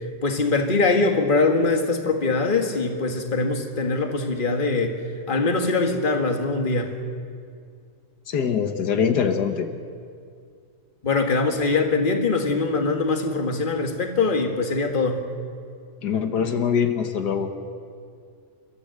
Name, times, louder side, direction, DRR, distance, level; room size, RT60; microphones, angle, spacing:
voice 1, 0.2-5.0 5.3-6.9 11.0-15.2, left 3 dB, 30° left, 4 dB, 1.8 m, -22 dB
voice 2, 8.3-9.7 16.0-17.5, left 7 dB, 80° left, 6 dB, 1.8 m, -23 dB
29.5 x 13.5 x 7.9 m, 2.3 s
omnidirectional pair, 1.7 m